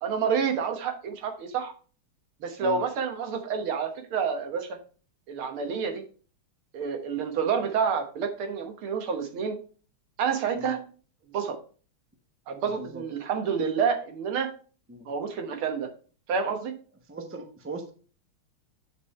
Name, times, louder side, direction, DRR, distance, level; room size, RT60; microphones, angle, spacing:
voice 1, 0.0-1.7 2.4-4.8 5.3-6.0 6.7-9.6 10.2-10.9 11.3-11.6 12.5-14.5 15.1-15.9 16.3-16.7, right 6 dB, 90° right, 6 dB, 2.1 m, -28 dB
voice 2, 12.6-13.0 14.9-15.1 17.1-17.9, right 2 dB, 10° right, 4 dB, 0.5 m, -38 dB
7.3 x 5.4 x 4.2 m, 0.39 s
omnidirectional pair, 2.3 m